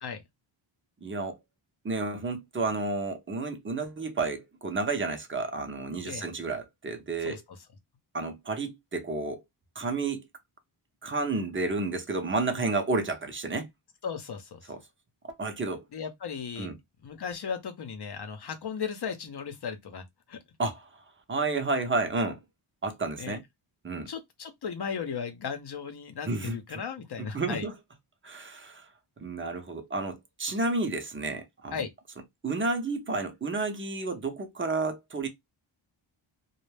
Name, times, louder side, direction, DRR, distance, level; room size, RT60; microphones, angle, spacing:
voice 1, 1.0-1.4 1.8-7.4 8.1-9.4 9.7-10.2 11.0-13.7 14.7-14.8 15.2-15.8 16.6-16.8 20.6-20.9 21.3-22.4 22.8-23.4 23.8-24.1 26.3-26.6 27.2-27.7 28.2-28.9 29.2-31.8 32.4-35.3, right 3 dB, 25° right, 0.8 m, -31 dB
voice 2, 14.0-14.7 15.9-16.7 17.0-20.4 23.2-23.4 24.1-27.7 31.7-31.9, left 6 dB, 50° left, 0.8 m, -36 dB
2.3 x 2.0 x 3.3 m
cardioid pair, 70°, 49 cm